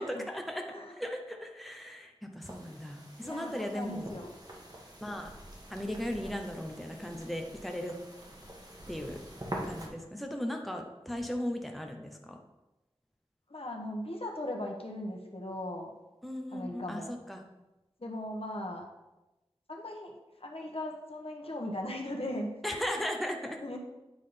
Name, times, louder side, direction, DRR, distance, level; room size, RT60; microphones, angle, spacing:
voice 1, 0.0-4.2 5.0-5.3 5.7-7.9 8.9-9.2 9.6-12.4 16.2-17.4 22.6-23.6, equal, ahead, 3 dB, 0.9 m, -37 dB
sound 1, 2.4-9.9, right 1 dB, 40° right, 1.6 m, -45 dB
voice 2, 3.2-4.3 13.5-15.9 16.5-17.1 18.0-18.8 19.7-20.1 20.4-22.8 23.6-23.8, left 1 dB, 65° left, 1 dB, 1.2 m, -38 dB
8.7 x 3.8 x 5.2 m, 1.0 s
wide cardioid pair, 45°, 11 cm